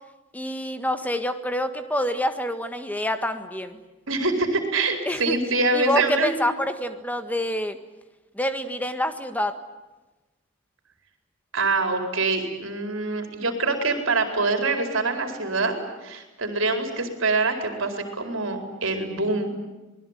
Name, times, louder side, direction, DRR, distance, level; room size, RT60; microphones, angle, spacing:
voice 1, 0.3-3.8 5.1-5.4 5.7-7.8 8.3-9.5, left 1 dB, 10° left, 9 dB, 1.6 m, -27 dB
voice 2, 4.1-6.4 11.5-19.5, right 3 dB, 70° right, 5 dB, 4.6 m, -25 dB
26.5 x 20.5 x 9.2 m, 1.1 s
head